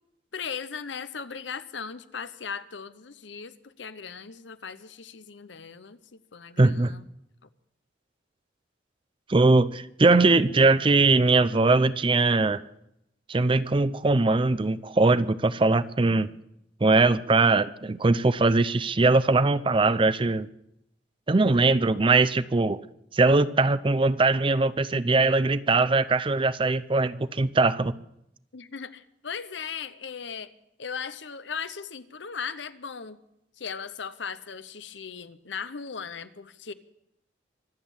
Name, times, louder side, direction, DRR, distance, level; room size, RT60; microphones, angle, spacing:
voice 1, 0.3-7.0 7.4-7.5 28.5-30.5 30.8-33.2 33.6-36.7, left 6 dB, 75° left, 0.9 m, -38 dB
voice 2, 6.6-7.0 9.3-12.6 13.3-16.3 16.8-20.5 21.3-22.8 23.1-27.9, right 3 dB, 30° right, 0.5 m, -21 dB
24.5 x 8.3 x 7.1 m
head